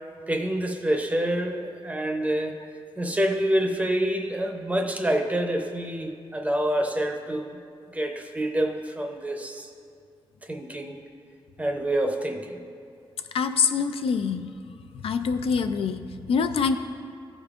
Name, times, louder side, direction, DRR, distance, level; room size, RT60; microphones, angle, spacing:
voice 1, 0.3-2.6 3.0-7.6 7.9-9.7 10.4-11.0 11.6-12.6, right 1 dB, 15° right, 3 dB, 0.6 m, -27 dB
voice 2, 13.3-14.5 14.9-16.8, left 5 dB, 80° left, 8 dB, 0.4 m, -25 dB
14.5 x 5.1 x 2.4 m, 2.3 s
wide cardioid pair, 125°, 10 cm